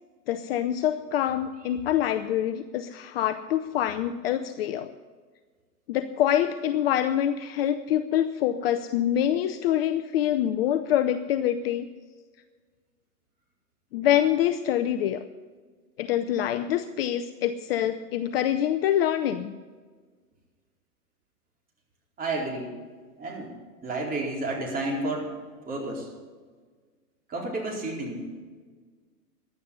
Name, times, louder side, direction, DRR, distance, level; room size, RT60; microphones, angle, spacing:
voice 1, 0.3-4.9 5.9-11.9 13.9-15.2 16.0-19.5, left 11 dB, 40° left, 9 dB, 0.6 m, -25 dB
voice 2, 22.2-22.8 23.2-23.5 23.8-25.3 25.7-26.1 27.3-28.3, right 2 dB, 20° right, -2 dB, 4.2 m, -31 dB
16.0 x 11.0 x 5.4 m, 1.5 s
hypercardioid pair, 125°, 48 cm